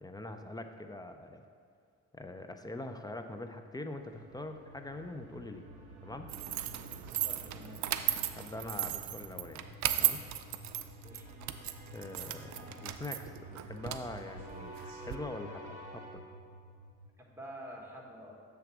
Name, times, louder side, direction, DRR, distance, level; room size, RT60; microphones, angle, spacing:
voice 1, 0.0-1.4 2.1-5.7 6.0-6.3 8.4-9.6 10.0-10.2 11.9-16.2, left 2 dB, 15° left, 6 dB, 0.5 m, -43 dB
sound 1, 3.9-17.1, equal, 50° right, 0.8 m, -52 dB
sound 2, 4.9-9.3 10.7-16.1, right 1 dB, 25° right, 1.6 m, -53 dB
sound 3, 6.3-15.2, right 12 dB, 65° right, 0.5 m, -36 dB
voice 2, 7.1-7.8 11.0-11.2 17.2-18.4, equal, 10° right, -1 dB, 1.4 m, -48 dB
7.7 x 3.5 x 6.1 m, 2.3 s
cardioid pair, 90°, 30 cm